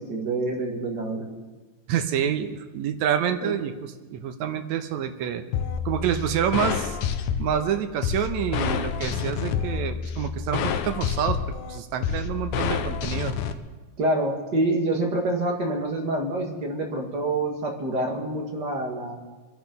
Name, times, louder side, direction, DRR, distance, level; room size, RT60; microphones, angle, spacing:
voice 1, 0.0-1.4 3.4-3.5 14.0-19.2, right 2 dB, 35° right, 1 dB, 2.4 m, -27 dB
voice 2, 1.9-5.4 5.9-7.0 7.4-11.4 11.7-13.4, right 9 dB, 75° right, 8 dB, 2.2 m, -27 dB
sound 1, 5.5-13.5, left 7 dB, 85° left, 2.3 m, -28 dB
24.5 x 10.5 x 5.5 m, 1.3 s
omnidirectional pair, 3.5 m